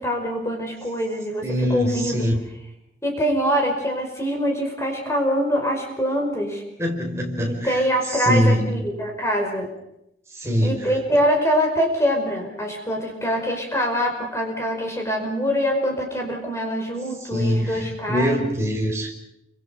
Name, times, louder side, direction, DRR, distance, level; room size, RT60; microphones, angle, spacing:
voice 1, 0.0-2.2 3.0-6.6 7.5-9.7 10.6-18.4, equal, 15° left, 1 dB, 5.3 m, -24 dB
voice 2, 1.4-2.4 6.8-7.8 8.1-8.8 10.4-11.0 17.3-19.1, equal, 15° right, 0 dB, 5.3 m, -23 dB
29.5 x 26.0 x 5.3 m, 0.81 s
head